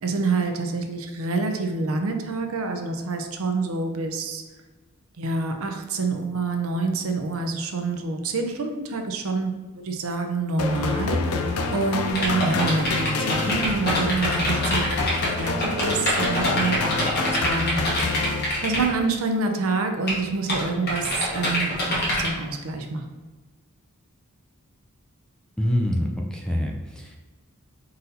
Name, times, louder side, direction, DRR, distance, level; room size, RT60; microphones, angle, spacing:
voice 1, 0.0-4.4 5.2-16.9 17.2-18.3 18.6-23.2, right 3 dB, 65° right, 5 dB, 0.5 m, -27 dB
sound 1, 10.6-18.9, left 4 dB, 80° left, 0.5 m, -27 dB
Typing on computer keyboard, 12.1-18.8 20.1-20.2 20.5-22.3, left 1 dB, 50° left, 1.3 m, -25 dB
voice 2, 25.6-27.2, equal, 5° left, 1 dB, 0.3 m, -25 dB
4.1 x 2.6 x 4.0 m, 1.2 s
head